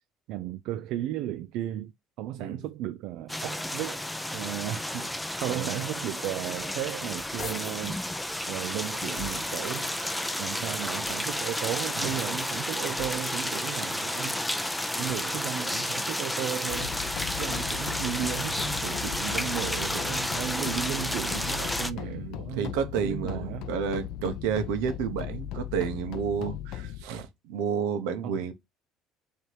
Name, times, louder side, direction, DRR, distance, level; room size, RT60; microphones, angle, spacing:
voice 1, 0.3-1.9 2.2-4.0 4.3-5.1 5.4-8.0 8.5-10.0 10.4-14.4 15.0-17.0 17.4-23.7 26.4-26.5 28.2-28.4, right 13 dB, 70° right, 0.3 m, -35 dB
sound 1, 3.3-21.9, left 1 dB, 5° left, 0.4 m, -32 dB
voice 2, 5.5-5.8 10.6-10.7 12.0-12.1 22.0-28.5, right 7 dB, 90° right, 0.9 m, -31 dB
sound 2, 6.9-7.9 8.5-9.7 10.3-11.6 12.2-13.5 14.4-15.4 16.0-17.4 17.9-19.5, left 5 dB, 35° left, 1.1 m, -47 dB
sound 3, 16.7-27.0, left 12 dB, 70° left, 0.4 m, -38 dB
3.3 x 2.8 x 4.5 m
cardioid pair, 110°, 0 cm